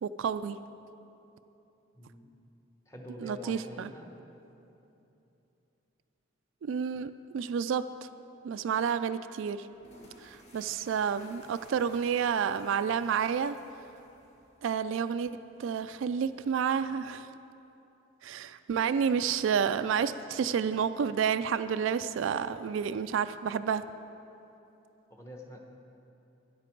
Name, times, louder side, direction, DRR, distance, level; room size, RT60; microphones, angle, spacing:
voice 1, 0.0-0.6 3.2-3.9 6.6-8.1 8.4-9.7 10.2-13.6 14.6-17.3 18.2-23.8, right 7 dB, 75° right, 12 dB, 0.3 m, -30 dB
voice 2, 1.9-2.3 2.9-4.1 25.1-25.6, left 1 dB, 15° left, 1 dB, 1.0 m, -45 dB
sound 1, 9.7-14.8, left 1 dB, 35° left, 1.6 m, -57 dB
13.0 x 10.5 x 4.5 m, 2.9 s
head